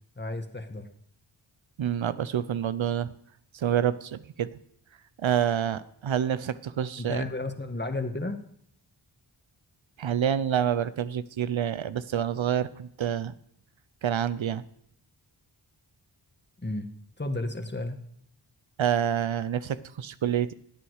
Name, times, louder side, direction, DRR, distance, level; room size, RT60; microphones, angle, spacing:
voice 1, 0.2-0.9 7.0-8.4 16.6-16.9 17.2-18.0, left 2 dB, 20° left, 6 dB, 1.6 m, -32 dB
voice 2, 1.8-3.1 3.5-4.6 5.2-7.3 10.0-13.3 14.0-14.6 18.8-20.5, right 9 dB, 75° right, 15 dB, 0.7 m, -27 dB
16.5 x 8.8 x 4.8 m, 0.71 s
cardioid pair, 45°, 47 cm